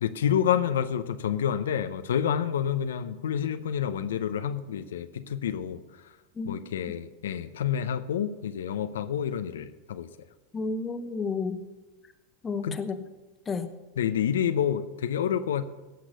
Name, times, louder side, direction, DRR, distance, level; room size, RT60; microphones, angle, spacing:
voice 1, 0.0-5.8 6.4-10.1 12.6-12.8 14.0-15.6, left 9 dB, 85° left, 10 dB, 0.6 m, -28 dB
voice 2, 6.4-7.0 10.5-11.6 12.4-13.0 13.5-13.7, left 4 dB, 25° left, 9 dB, 1.0 m, -32 dB
17.0 x 6.1 x 6.7 m, 1.1 s
hypercardioid pair, 110°, 0 cm